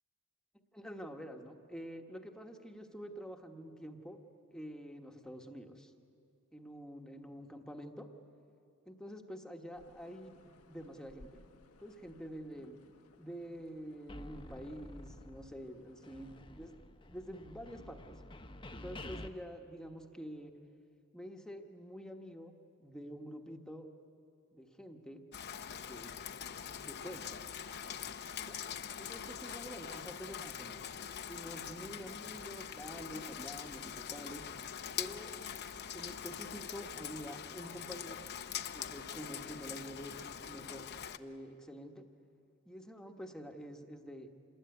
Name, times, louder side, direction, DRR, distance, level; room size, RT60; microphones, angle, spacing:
voice 1, 0.7-4.2 4.5-5.9 6.5-8.1 8.8-11.4 11.8-12.8 13.2-16.7 17.0-18.1 18.7-20.5 21.1-22.5 22.8-23.9 24.5-25.2 25.8-26.1 26.6-27.3 28.3-28.6 29.0-30.8 31.3-34.4 35.0-35.3 35.9-38.3 38.7-40.8 41.2-42.0 42.7-44.3, equal, 5° left, 3 dB, 1.3 m, -47 dB
sound 1, 9.7-16.4, left 2 dB, 85° left, 1.2 m, -63 dB
sound 2, 14.1-15.8 16.0-19.3, left 1 dB, 25° left, 1.0 m, -49 dB
Rain, 25.3-41.2, left 8 dB, 50° left, 0.7 m, -43 dB
27.5 x 20.5 x 9.6 m, 2.6 s
head